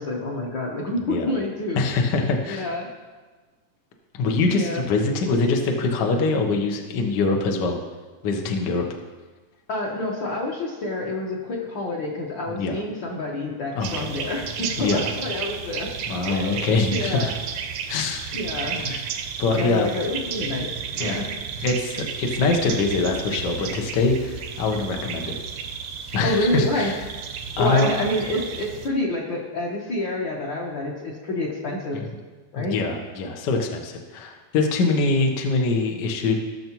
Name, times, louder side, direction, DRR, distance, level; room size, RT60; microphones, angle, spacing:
voice 1, 0.0-1.8 2.4-2.9 4.4-4.8 9.7-15.9 16.3-17.3 18.3-18.8 19.5-21.3 26.2-26.9 27.6-32.0 32.5-32.8, left 1 dB, 60° left, -4 dB, 1.3 m, -28 dB
voice 2, 1.0-1.3 1.8-2.7 4.1-7.7 8.2-8.8 12.5-12.8 13.7-14.1 14.8-15.1 16.1-17.3 17.9-18.3 18.8-19.0 19.4-19.9 21.0-21.3 21.6-25.4 26.1-26.9 27.6-28.0 31.9-32.0 32.6-36.3, left 3 dB, 85° left, 2 dB, 0.9 m, -23 dB
sound 1, 13.8-28.9, right 7 dB, 75° right, 1.8 m, -33 dB
17.5 x 6.8 x 3.0 m, 1.3 s
omnidirectional pair, 3.6 m